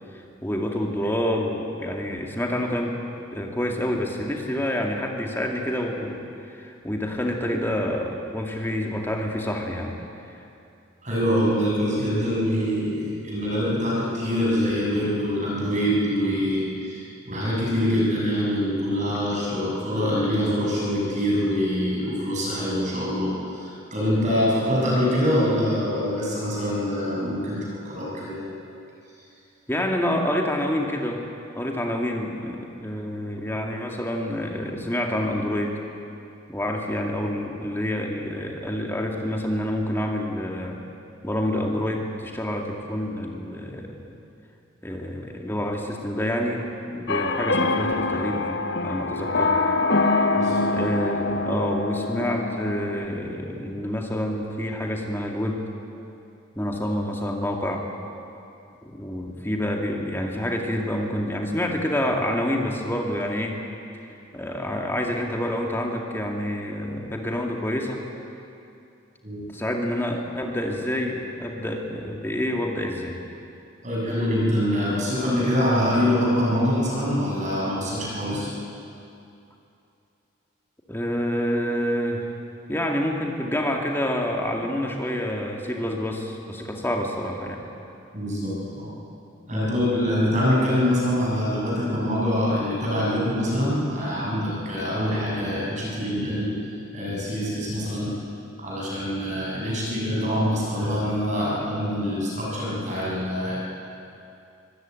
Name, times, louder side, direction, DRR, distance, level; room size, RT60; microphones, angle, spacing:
voice 1, 0.1-3.0 3.3-6.2 6.5-10.0 29.7-31.2 31.5-35.8 36.5-40.8 41.2-44.2 44.8-49.6 50.7-55.6 56.6-57.8 58.8-63.6 64.3-68.0 69.5-73.1 80.9-82.3 82.7-87.6 89.5-89.8, left 1 dB, 10° left, 1 dB, 2.3 m, -27 dB
voice 2, 11.0-28.6 50.3-50.6 69.2-69.4 73.8-78.5 88.1-88.9 89.5-96.5 96.9-98.2 98.6-103.6, equal, 35° right, -5 dB, 6.7 m, -24 dB
sound 1, 47.1-53.0, left 3 dB, 55° left, 1.1 m, -24 dB
24.5 x 16.0 x 9.2 m, 2.6 s
head